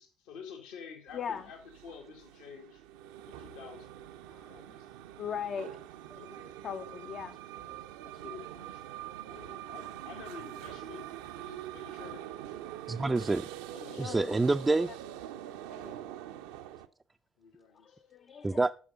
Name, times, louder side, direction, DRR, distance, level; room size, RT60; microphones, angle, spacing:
voice 1, 0.0-2.8 3.3-4.0 4.5-4.9 6.1-7.1 7.6-8.9 9.3-11.0 11.3-12.2 13.7-14.4 15.1-15.4 17.4-18.0, left 6 dB, 70° left, 1.7 m, -49 dB
voice 2, 1.1-1.5 4.3-4.5 5.2-5.8 6.6-7.4 14.0-14.3 15.7-16.0 17.8-18.6, left 8 dB, 50° left, 0.6 m, -39 dB
sound 1, 1.1-16.9, right 12 dB, 70° right, 0.6 m, -44 dB
voice 3, 12.9-13.5 14.0-14.9 18.4-18.7, right 3 dB, 20° right, 0.4 m, -27 dB
9.6 x 6.5 x 5.3 m
figure-of-eight pair, 50°, 0 cm